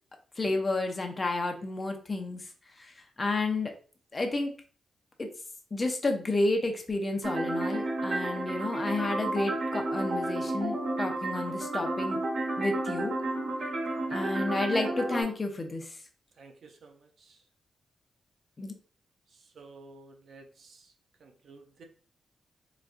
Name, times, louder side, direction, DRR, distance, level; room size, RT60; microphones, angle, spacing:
voice 1, 0.4-2.4 2.8-2.9 3.2-3.7 4.1-4.5 5.2-5.3 5.7-12.2 12.6-13.1 14.1-16.0 18.6-18.7, left 2 dB, 30° left, 3 dB, 0.6 m, -31 dB
sound 1, 7.2-15.2, right 2 dB, 80° right, 1.3 m, -31 dB
voice 2, 16.4-17.0 19.6-20.8 21.2-21.8, right 3 dB, 60° right, 4 dB, 0.6 m, -52 dB
4.0 x 2.3 x 2.4 m, 0.41 s
cardioid pair, 110°, 0 cm